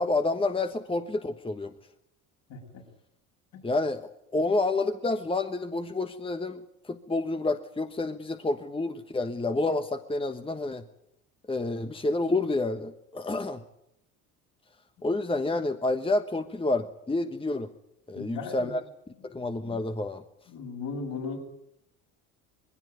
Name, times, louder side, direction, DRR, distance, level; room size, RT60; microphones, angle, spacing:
voice 1, 0.0-1.7 3.6-10.8 11.5-13.6 15.0-17.7 18.1-18.8 19.2-20.2, left 2 dB, 15° left, 8 dB, 1.2 m, -29 dB
voice 2, 2.5-2.8 3.5-3.6 18.1-18.7 20.5-21.4, left 4 dB, 65° left, 1 dB, 7.8 m, -36 dB
20.5 x 17.0 x 9.5 m, 0.81 s
supercardioid pair, 80°, 39 cm